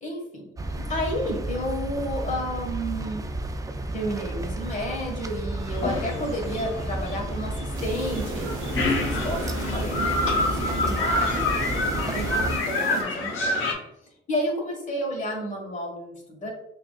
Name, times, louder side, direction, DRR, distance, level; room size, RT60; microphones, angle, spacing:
voice 1, 0.0-3.2 3.9-9.4 9.7-13.9 14.3-16.5, equal, 40° left, 0 dB, 1.4 m, -31 dB
sound 1, 0.6-12.6, right 2 dB, 15° right, 0.3 m, -32 dB
sound 2, 5.7-13.7, left 2 dB, 80° left, 0.9 m, -28 dB
sound 3, 7.7-13.0, right 3 dB, 90° right, 0.8 m, -35 dB
5.7 x 2.5 x 2.3 m, 0.82 s
cardioid pair, 90°, 20 cm